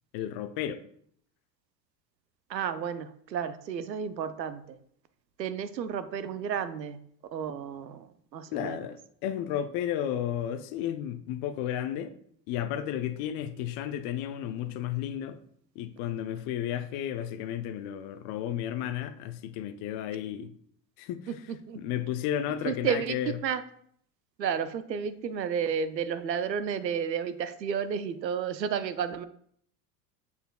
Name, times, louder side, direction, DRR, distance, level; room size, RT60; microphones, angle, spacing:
voice 1, 0.1-0.8 8.5-12.1 12.5-15.4 15.8-20.5 21.0-21.2 21.7-23.4, left 10 dB, 45° left, 0.7 m, -33 dB
voice 2, 2.5-4.8 5.4-7.0 7.3-8.8 21.3-21.4 21.7-21.8 22.6-23.2 23.4-23.6 24.4-29.2, right 7 dB, 85° right, 0.6 m, -32 dB
7.0 x 6.7 x 2.3 m
figure-of-eight pair, 80°, 49 cm